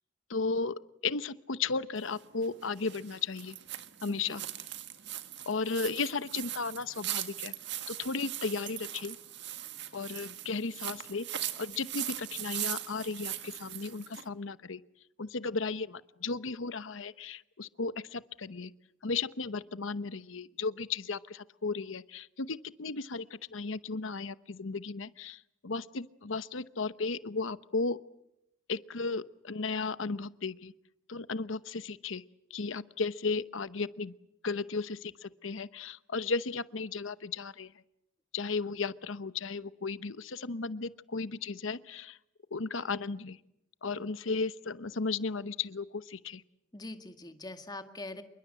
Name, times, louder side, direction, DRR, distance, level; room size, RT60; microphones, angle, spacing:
voice 1, 0.3-3.6 4.0-4.4 5.5-7.5 7.9-9.2 9.9-14.8 15.2-18.7 19.0-23.3 23.5-28.0 28.7-30.7 31.1-32.2 32.5-34.1 34.4-37.7 38.3-42.2 42.5-43.4 43.8-46.4, left 4 dB, 75° left, 15 dB, 0.9 m, -35 dB
sound 1, 2.0-14.3, right 12 dB, 60° right, 1.8 m, -40 dB
voice 2, 4.0-4.4 43.9-44.1 46.7-48.2, left 2 dB, 20° left, 7 dB, 1.9 m, -43 dB
27.5 x 23.5 x 7.7 m, 0.80 s
head